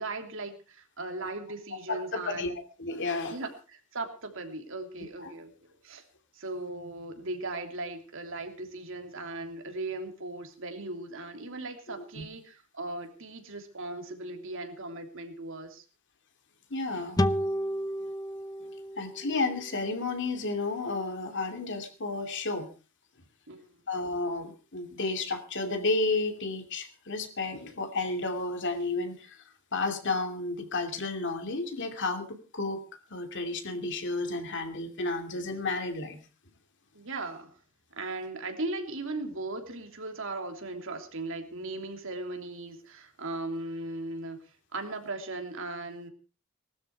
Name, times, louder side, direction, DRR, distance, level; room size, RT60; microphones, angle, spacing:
voice 1, 0.0-2.5 3.3-5.5 5.8-6.0 6.3-15.8 23.5-23.6 36.9-37.5 37.9-44.4 44.7-46.1, right 2 dB, 65° right, 5 dB, 3.1 m, -38 dB
voice 2, 1.9-2.5 2.8-3.4 5.2-5.3 12.1-12.2 16.7-17.2 18.6-18.7 19.0-22.7 23.9-29.4 29.7-32.8 33.1-36.2, left 3 dB, 55° left, 6 dB, 2.7 m, -32 dB
sound 1, 17.2-20.5, equal, 20° left, 0.7 m, -32 dB
19.5 x 13.0 x 4.7 m, 0.35 s
head